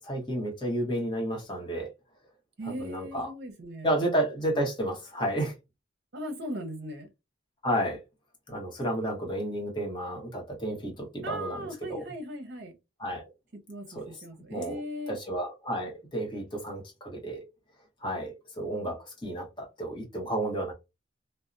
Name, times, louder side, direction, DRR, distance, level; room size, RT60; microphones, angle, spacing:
voice 1, 0.0-1.9 2.8-3.3 3.8-5.5 7.6-8.0 8.5-11.6 11.9-12.0 13.0-13.2 13.9-14.0 14.5-14.8 15.1-17.4 18.0-20.7, right 1 dB, 25° left, 1.0 m, -31 dB
voice 2, 2.6-3.9 6.1-7.1 11.2-12.7 13.5-15.2, equal, 55° right, 0.7 m, -38 dB
2.7 x 2.1 x 2.5 m
head